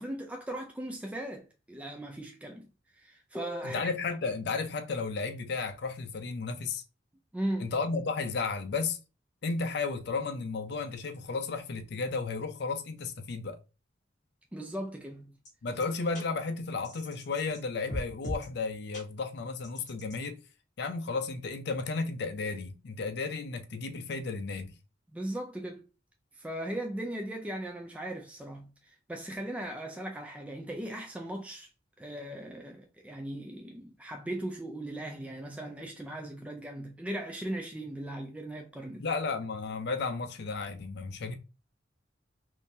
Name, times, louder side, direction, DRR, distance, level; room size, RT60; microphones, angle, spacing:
voice 1, 0.0-2.7 3.0-3.9 7.3-7.7 14.5-15.4 25.1-25.9 26.3-31.7 32.0-39.1, right 1 dB, 5° right, 0.3 m, -38 dB
voice 2, 3.6-6.8 7.6-9.0 9.4-13.6 15.6-20.4 20.8-24.7 39.0-41.4, left 4 dB, 60° left, 0.5 m, -33 dB
sound 1, 15.5-15.6 15.8-15.9 16.1-16.2 16.8-17.6 17.9-18.5 18.9-19.0 19.6-20.2, equal, 40° left, 1.5 m, -38 dB
3.7 x 2.6 x 2.6 m
head